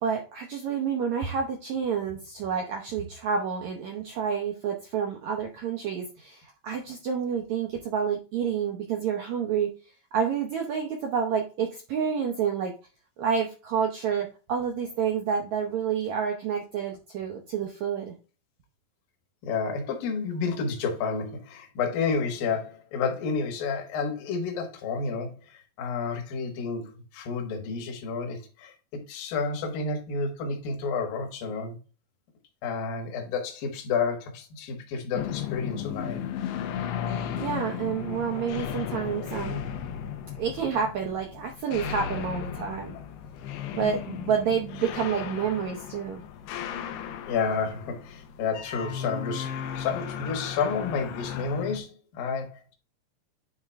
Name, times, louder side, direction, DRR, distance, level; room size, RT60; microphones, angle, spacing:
voice 1, 0.0-9.7 10.1-12.7 13.2-18.1 37.4-39.6 40.4-42.9 43.7-46.2, right 7 dB, 85° right, 1.6 m, -29 dB
voice 2, 19.4-31.8 32.6-36.2 47.3-52.7, left 5 dB, 65° left, 2.9 m, -30 dB
sound 1, 35.1-51.8, left 8 dB, 80° left, 2.9 m, -35 dB
9.8 x 3.6 x 3.3 m
omnidirectional pair, 4.8 m